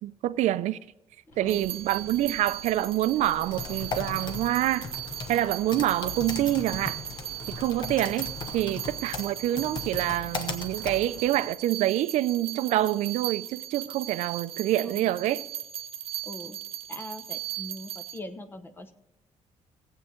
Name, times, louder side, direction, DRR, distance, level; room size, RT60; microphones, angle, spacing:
voice 1, 0.0-0.8 1.4-4.9 5.3-7.0 7.5-15.4, right 13 dB, 85° right, 0.4 m, -26 dB
sound 1, 1.3-8.7, left 1 dB, 90° left, 3.3 m, -50 dB
voice 2, 1.3-1.7 14.8-15.2 16.2-16.6 16.9-18.9, left 1 dB, 20° left, 0.8 m, -42 dB
sound 2, 1.5-18.2, right 12 dB, 50° right, 0.8 m, -38 dB
Typing, 3.3-11.5, left 4 dB, 40° left, 1.0 m, -38 dB
18.0 x 8.0 x 3.7 m
cardioid pair, 165°, 12 cm